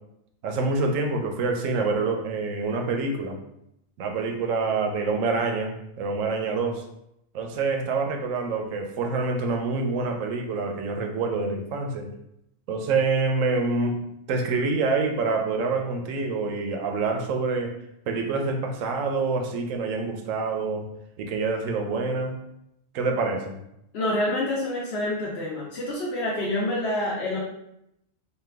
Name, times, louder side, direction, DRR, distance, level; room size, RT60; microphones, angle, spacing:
voice 1, 0.4-3.4 4.0-6.8 7.3-12.1 12.7-14.0 14.3-17.7 18.1-20.9 21.2-22.4 22.9-23.6, right 3 dB, 80° right, 3 dB, 1.0 m, -26 dB
voice 2, 23.9-27.4, left 1 dB, 60° left, -5 dB, 0.9 m, -27 dB
3.1 x 2.2 x 3.3 m, 0.80 s
omnidirectional pair, 1.4 m